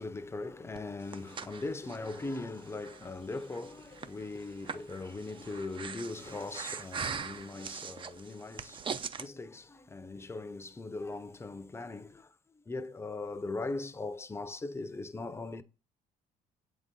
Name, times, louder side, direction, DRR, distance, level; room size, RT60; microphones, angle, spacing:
voice 1, 0.0-15.6, left 3 dB, 15° left, 0.6 m, -40 dB
Breathing, 0.8-9.3, right 6 dB, 30° right, 0.5 m, -42 dB
7.9 x 4.0 x 3.8 m
cardioid pair, 110°, 17 cm